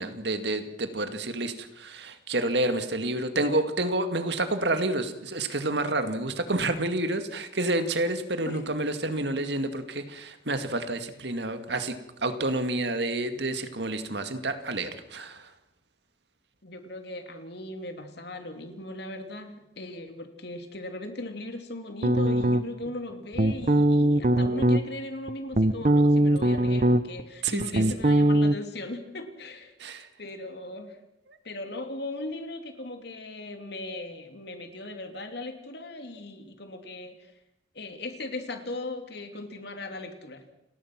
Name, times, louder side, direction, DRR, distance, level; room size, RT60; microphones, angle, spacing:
voice 1, 0.0-11.9 12.2-15.4 27.4-27.8 29.8-30.1, right 2 dB, 60° right, 8 dB, 2.1 m, -29 dB
voice 2, 16.6-29.7 30.2-31.0 31.4-37.3 37.7-40.4, left 2 dB, 60° left, 6 dB, 3.0 m, -38 dB
sound 1, 22.0-22.9 23.4-24.8 25.3-27.2 27.5-28.6, right 1 dB, 40° right, 0.8 m, -21 dB
29.5 x 19.0 x 6.1 m, 0.84 s
head